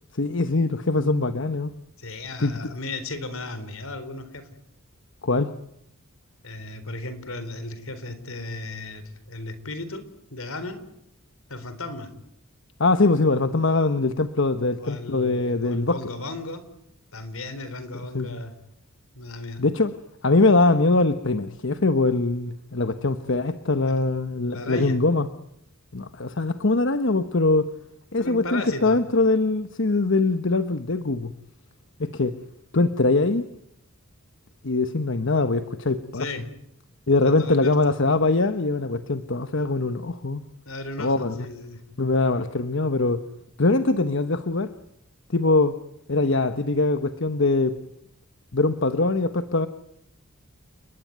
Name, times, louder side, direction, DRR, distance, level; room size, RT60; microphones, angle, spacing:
voice 1, 0.2-1.7 2.4-2.6 5.2-5.5 12.8-16.0 18.1-18.4 19.6-19.9 20.2-25.3 25.9-27.7 28.1-31.3 32.0-32.3 32.7-33.5 34.6-36.3 37.1-40.4 41.0-41.5 42.0-43.2 43.6-44.7 45.3-45.8 46.1-47.8 48.5-49.7, left 3 dB, 60° left, 10 dB, 1.1 m, -22 dB
voice 2, 2.0-4.5 6.4-10.0 10.3-10.8 11.5-12.1 14.8-16.6 17.1-18.5 19.1-19.6 23.8-24.0 24.5-24.9 28.2-29.0 36.1-36.4 37.2-37.7 40.7-41.8, left 2 dB, 80° left, 12 dB, 4.0 m, -35 dB
30.0 x 20.5 x 9.3 m, 0.79 s
head